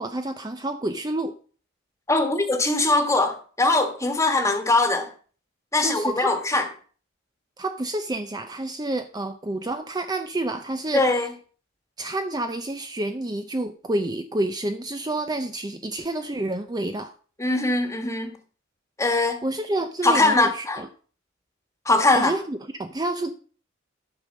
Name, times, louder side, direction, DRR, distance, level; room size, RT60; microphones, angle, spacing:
voice 1, 0.0-1.3 5.8-6.3 7.6-11.2 12.0-17.1 19.4-20.9 22.1-23.3, right 2 dB, 20° right, 0.6 m, -29 dB
voice 2, 2.1-5.1 5.7-6.7 10.9-11.3 17.4-18.4 19.0-19.4 20.0-20.8 21.8-22.3, left 2 dB, 15° left, 1.4 m, -21 dB
11.5 x 5.1 x 6.4 m
head